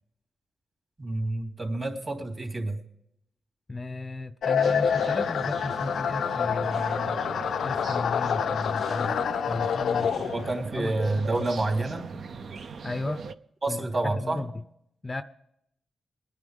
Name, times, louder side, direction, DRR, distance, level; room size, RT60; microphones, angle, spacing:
voice 1, 1.0-2.8 10.1-12.2 13.6-14.4, right 2 dB, 35° right, 2 dB, 3.2 m, -29 dB
voice 2, 3.7-7.2 7.6-9.2 9.5-11.5 12.8-13.2 13.7-14.5 15.0-15.2, left 2 dB, 25° left, 12 dB, 0.5 m, -35 dB
sound 1, 4.4-10.6, left 7 dB, 80° left, 0.4 m, -27 dB
sound 2, 4.6-13.3, right 5 dB, 60° right, 0.6 m, -39 dB
23.5 x 9.9 x 3.5 m, 0.75 s
cardioid pair, 95°, 0 cm